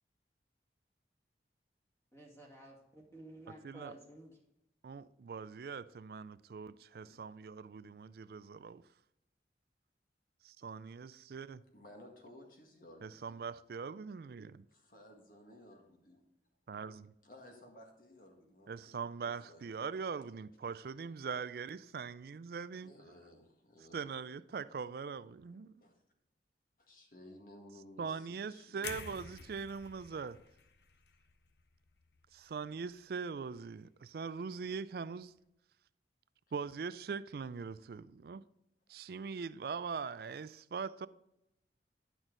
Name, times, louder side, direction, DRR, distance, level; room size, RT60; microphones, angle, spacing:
voice 1, 2.1-4.4, right 1 dB, 15° left, 1.9 m, -53 dB
voice 2, 4.8-8.8 10.4-11.6 13.0-14.7 16.7-17.1 18.7-22.9 23.9-25.8 28.0-30.4 32.3-35.3 36.5-38.4 38.9-41.1, right 5 dB, 55° right, 0.3 m, -42 dB
voice 3, 11.7-13.4 14.7-16.2 17.2-19.8 20.1-20.2 22.8-24.1 25.8-26.0 26.8-29.4 38.9-39.2, left 1 dB, 50° left, 1.8 m, -57 dB
sound 1, 28.8-32.9 33.2-33.4, left 6 dB, 70° left, 0.7 m, -50 dB
10.5 x 6.2 x 3.8 m
head